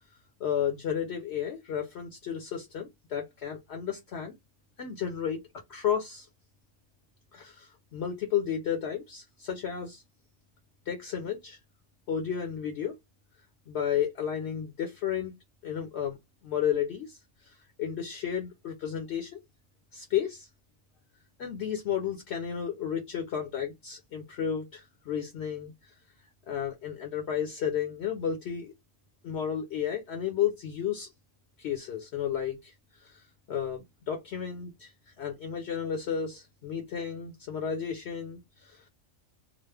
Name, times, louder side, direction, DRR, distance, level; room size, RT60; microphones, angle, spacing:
voice 1, 0.4-4.3 4.8-5.4 5.7-6.3 7.3-10.0 10.9-11.6 12.1-12.9 13.7-15.3 15.6-16.2 16.4-19.4 19.9-20.5 21.4-25.9 26.5-28.7 29.2-31.1 31.6-32.7 33.0-34.9 35.2-38.9, left 8 dB, 65° left, 0.9 m, -32 dB
2.9 x 2.0 x 3.2 m
omnidirectional pair, 1.3 m